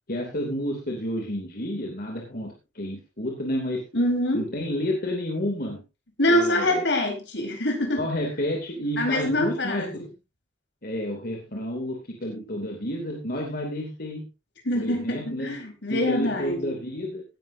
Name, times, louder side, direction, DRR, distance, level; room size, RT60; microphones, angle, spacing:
voice 1, 0.1-3.8 4.3-5.8 6.3-6.8 8.0-10.0 10.8-14.2 14.7-15.5 15.9-17.2, equal, 55° left, 1 dB, 2.8 m, -30 dB
voice 2, 3.9-4.4 6.2-8.1 9.0-9.9 14.6-16.8, left 1 dB, 75° left, 4 dB, 4.4 m, -25 dB
17.5 x 11.0 x 2.7 m, 0.27 s
head